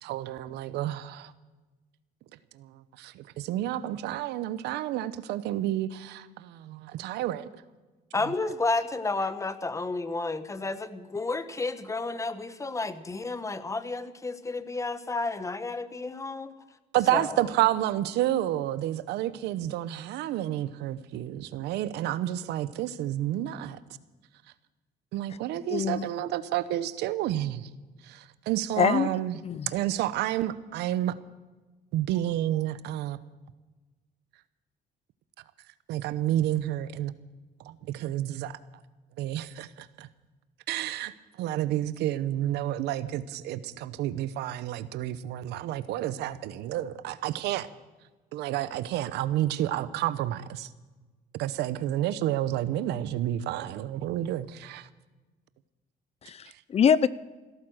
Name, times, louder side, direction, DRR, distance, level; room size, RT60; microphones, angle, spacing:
voice 1, 0.0-1.3 2.6-2.7 3.0-7.5 16.9-23.8 25.1-27.7 28.1-29.4 29.7-31.2 31.9-33.2 35.9-37.1 37.6-38.6 39.2-40.1 40.7-47.7 48.3-50.7 51.4-54.9, right 13 dB, 85° right, 0.8 m, -30 dB
voice 2, 8.1-16.5 17.1-17.5, left 3 dB, 20° left, 1.1 m, -31 dB
voice 3, 25.7-26.1 28.8-29.1 29.4-29.7 56.2-57.1, left 7 dB, 40° left, 0.5 m, -24 dB
16.0 x 13.5 x 6.4 m
cardioid pair, 110°, 17 cm